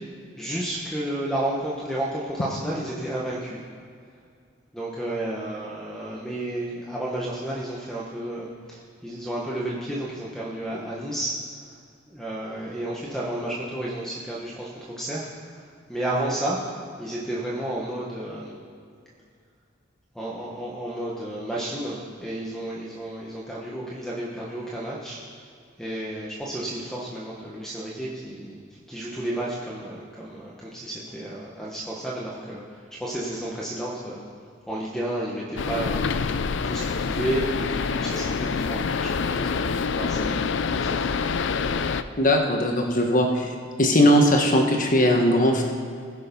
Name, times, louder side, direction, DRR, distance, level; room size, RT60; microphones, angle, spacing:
voice 1, 0.4-3.6 4.7-11.3 12.1-15.3 15.5-16.6 17.0-18.6 20.1-25.2 25.8-28.6 28.9-34.2 34.7-41.1, right 1 dB, 5° left, -5 dB, 1.2 m, -32 dB
sound 1, 35.6-42.0, left 5 dB, 65° left, 0.5 m, -26 dB
voice 2, 42.2-45.6, equal, 40° left, 2 dB, 1.5 m, -19 dB
20.0 x 6.7 x 5.4 m, 2.3 s
head